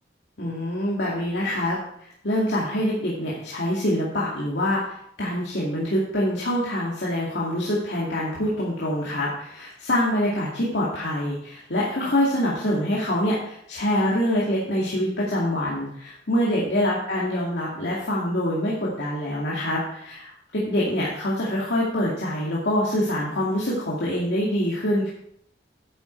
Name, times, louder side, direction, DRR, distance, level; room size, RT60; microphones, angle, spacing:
voice 1, 0.4-25.1, left 1 dB, 80° left, -6 dB, 2.3 m, -25 dB
10.5 x 8.3 x 4.5 m, 0.71 s
head